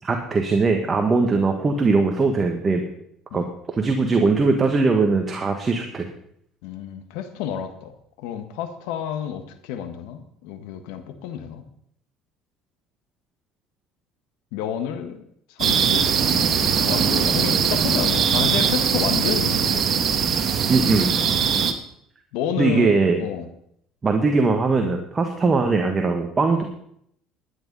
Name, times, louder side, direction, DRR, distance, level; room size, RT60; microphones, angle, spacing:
voice 1, 0.0-2.8 3.3-3.4 3.7-6.1 20.7-21.2 22.6-23.2 24.0-26.7, right 3 dB, 25° right, 4 dB, 1.5 m, -20 dB
voice 2, 6.6-7.9 8.2-11.6 14.5-15.3 15.5-16.1 16.6-19.9 22.3-23.4 25.4-25.6, left 9 dB, 85° left, 9 dB, 1.5 m, -30 dB
sound 1, 15.6-21.7, right 7 dB, 45° right, 1.4 m, -21 dB
12.0 x 9.8 x 5.5 m, 0.69 s
supercardioid pair, 105°, 0 cm